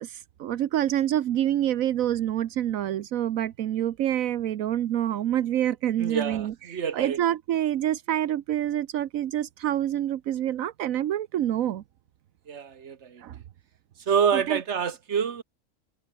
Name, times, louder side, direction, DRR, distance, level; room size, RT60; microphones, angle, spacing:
voice 1, 0.0-11.8 13.2-13.4 14.3-14.6, right 11 dB, 85° right, 1.2 m, -27 dB
voice 2, 6.0-7.2 12.5-13.2 14.1-15.4, right 7 dB, 55° right, 1.6 m, -27 dB
omnidirectional pair, 1.4 m